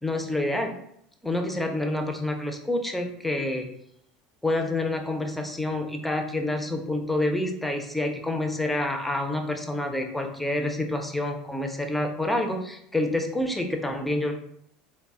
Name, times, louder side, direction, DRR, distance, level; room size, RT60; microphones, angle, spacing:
voice 1, 0.0-0.7 1.2-3.7 4.4-14.3, left 1 dB, 5° left, 4 dB, 0.4 m, -28 dB
2.0 x 2.0 x 3.5 m, 0.74 s
supercardioid pair, 100°, 3 cm